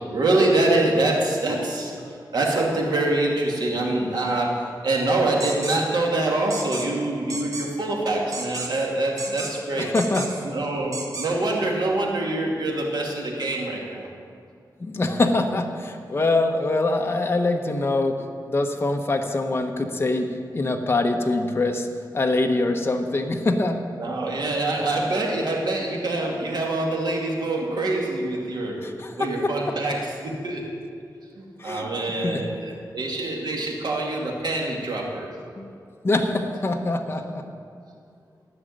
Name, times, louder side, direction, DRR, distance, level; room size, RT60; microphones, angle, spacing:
voice 1, 0.1-9.9 10.4-14.1 24.0-28.9 29.2-30.7 31.4-35.3, right 2 dB, 70° right, -2 dB, 2.5 m, -25 dB
sound 1, 5.4-5.8 6.5-6.9 7.3-7.7 8.3-8.9 9.2-9.6 10.0-10.5 10.9-11.3, right 3 dB, 50° right, 1.8 m, -33 dB
voice 2, 9.7-10.3 14.8-18.2 18.4-20.3 20.5-21.9 22.1-23.8 28.8-29.5 31.6-31.9 32.2-32.4 35.6-35.7 36.0-37.4, left 2 dB, 30° left, 3 dB, 1.0 m, -24 dB
14.0 x 6.5 x 9.3 m, 2.4 s
wide cardioid pair, 120°, 8 cm